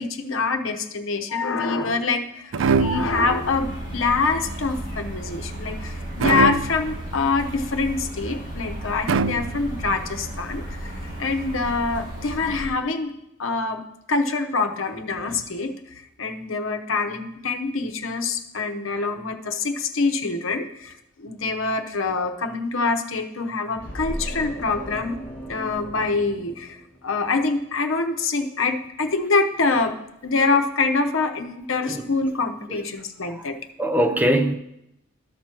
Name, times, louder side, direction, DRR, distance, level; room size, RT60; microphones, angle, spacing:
voice 1, 0.0-10.9 11.2-13.1 13.4-13.8 14.1-15.8 16.2-25.2 25.5-30.0 30.2-33.6, left 4 dB, 80° left, 6 dB, 0.9 m, -25 dB
sound 1, 2.5-12.7, right 1 dB, 50° right, 4.2 m, -34 dB
sound 2, 2.5-3.4 6.2-7.0 9.1-9.9, right 5 dB, 75° right, 0.4 m, -23 dB
sound 3, 23.7-27.2, equal, 10° left, 2.2 m, -36 dB
voice 2, 33.8-34.5, equal, 10° right, 6 dB, 0.5 m, -23 dB
13.0 x 6.1 x 4.5 m, 0.83 s
head